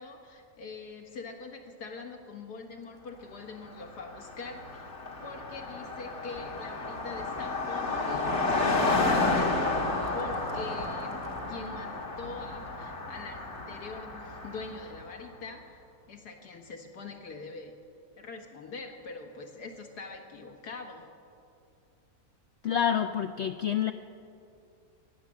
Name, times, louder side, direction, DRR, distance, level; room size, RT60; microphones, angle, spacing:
voice 1, 0.0-4.9 5.2-9.8 10.1-11.2 11.5-13.4 13.7-17.7 18.2-21.1, left 3 dB, 90° left, 3 dB, 2.2 m, -43 dB
Car passing by, 3.7-3.8 4.0-15.0, left 3 dB, 45° left, 2.0 m, -31 dB
voice 2, 22.6-23.9, left 9 dB, 70° left, 8 dB, 0.6 m, -27 dB
17.5 x 10.5 x 7.5 m, 2.5 s
omnidirectional pair, 1.7 m